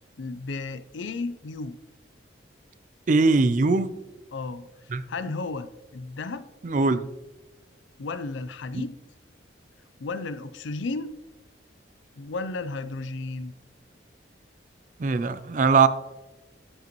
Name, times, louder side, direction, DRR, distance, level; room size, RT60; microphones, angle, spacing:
voice 1, 0.2-1.8 4.3-4.7 5.1-6.5 8.0-8.9 10.0-11.1 12.2-13.5, left 3 dB, 80° left, 13 dB, 0.5 m, -33 dB
voice 2, 3.1-3.9 4.9-5.0 6.6-7.1 15.0-15.9, right 4 dB, 40° right, 13 dB, 0.4 m, -20 dB
13.0 x 5.1 x 3.1 m, 1.0 s
head